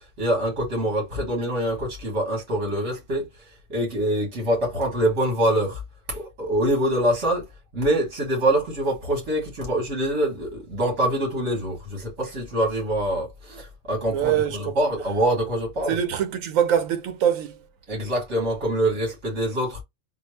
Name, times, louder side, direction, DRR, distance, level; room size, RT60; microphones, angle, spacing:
voice 1, 0.2-3.3 3.7-5.8 6.1-7.4 7.7-16.0 17.9-19.8, right 1 dB, 60° right, 2.2 m, -25 dB
voice 2, 14.1-14.7 15.9-17.6, right 9 dB, 85° right, 1.1 m, -23 dB
3.8 x 2.1 x 3.3 m
omnidirectional pair, 1.4 m